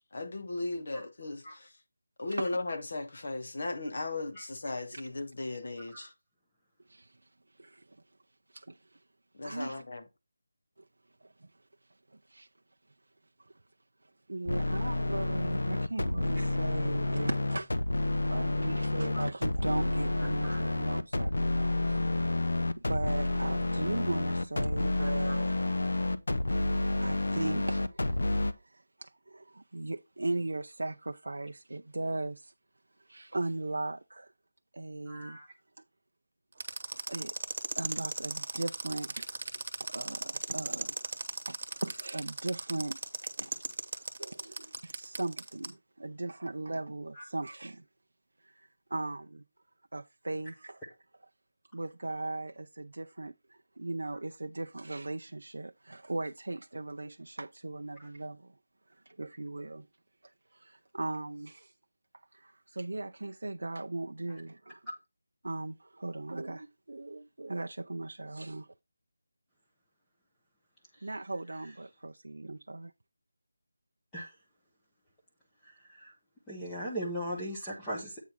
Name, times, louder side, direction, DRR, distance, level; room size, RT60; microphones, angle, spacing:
voice 1, 0.1-1.7 2.2-6.1 9.3-10.0, left 2 dB, 45° left, 1.2 m, -36 dB
voice 2, 9.4-9.8 12.3-12.5 14.3-17.7 18.3-22.0 22.9-25.6 27.0-27.8 29.0-32.5 33.1-34.3 34.7-35.4 37.1-37.3 37.8-39.4 39.9-40.9 41.5-43.0 43.4-43.5 44.2-47.8 48.9-49.4 49.9-50.8 51.7-53.3 53.8-58.4 59.2-59.9 60.6-61.7 62.4-64.8 65.4-68.7 71.0-72.9, right 2 dB, 80° right, 0.5 m, -37 dB
sound 1, 14.5-28.5, left 2 dB, 75° left, 0.9 m, -29 dB
voice 3, 25.0-25.3 35.1-35.5 47.1-47.2 58.0-58.1 64.3-64.4 74.1-74.3 76.0-76.1 76.5-78.2, equal, 5° left, 0.9 m, -38 dB
sound 2, 36.6-45.7, right 3 dB, 35° right, 1.2 m, -36 dB
8.3 x 3.6 x 6.0 m
figure-of-eight pair, 180°, 0 cm